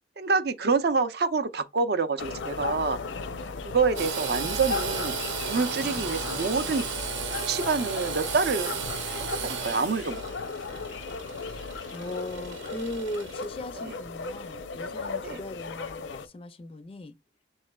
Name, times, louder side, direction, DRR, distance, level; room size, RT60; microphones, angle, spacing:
voice 1, 0.2-3.0 3.6-5.1 5.4-6.9 7.4-8.7 9.4-10.2 15.2-15.4, right 4 dB, 55° right, 0.5 m, -26 dB
sound 1, 2.2-16.3, left 4 dB, 80° left, 0.6 m, -36 dB
Engine / Sawing, 4.0-13.5, right 7 dB, 80° right, 0.8 m, -35 dB
voice 2, 11.9-17.2, left 1 dB, 30° left, 0.3 m, -38 dB
6.5 x 3.1 x 2.3 m
head